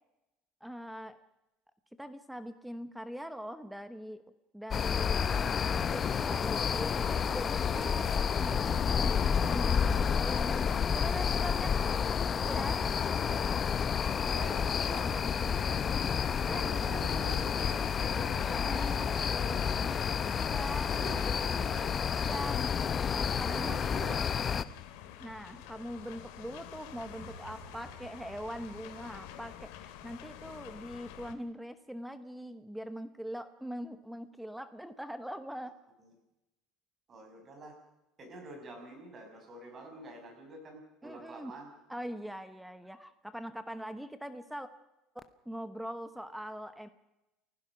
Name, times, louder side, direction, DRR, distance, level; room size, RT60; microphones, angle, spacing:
voice 1, 0.6-1.2 2.0-4.2 4.5-11.7 12.4-12.8 16.5-16.6 18.4-19.1 20.4-20.9 22.2-22.6 22.9-23.9 25.2-35.7 41.0-41.5 41.9-44.7 45.5-46.9, equal, ahead, 11 dB, 0.9 m, -42 dB
sound 1, 4.7-24.6, left 7 dB, 25° left, 0.7 m, -30 dB
voice 2, 11.5-11.9 14.3-16.0 16.4-20.0 20.5-22.0 23.5-24.2 37.1-37.8 38.2-41.7, right 1 dB, 25° right, 3 dB, 6.2 m, -46 dB
sound 2, 17.6-31.3, left 11 dB, 85° left, 2.6 m, -49 dB
sound 3, 27.0-30.2, right 4 dB, 60° right, 5.0 m, -55 dB
29.5 x 16.0 x 6.1 m, 0.94 s
cardioid pair, 165°, 0 cm